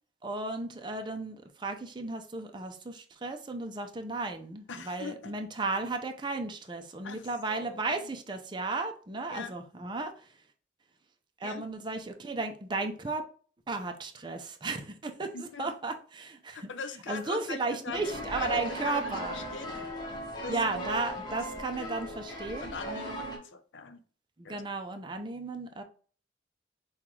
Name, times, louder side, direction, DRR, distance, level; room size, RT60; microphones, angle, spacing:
voice 1, 0.2-10.3 11.4-13.2 13.7-16.7 17.1-19.4 20.5-23.2 24.4-25.8, right 3 dB, 25° right, 5 dB, 0.5 m, -34 dB
voice 2, 4.7-5.3 7.0-8.1 9.3-9.5 11.4-11.6 15.3-15.7 16.5-19.0 19.3-19.8 20.4-20.6 22.6-24.0 24.4-24.6, left 5 dB, 85° left, 9 dB, 0.6 m, -42 dB
sound 1, 17.9-23.4, equal, 25° left, 1.0 m, -37 dB
5.7 x 2.3 x 3.1 m, 0.41 s
head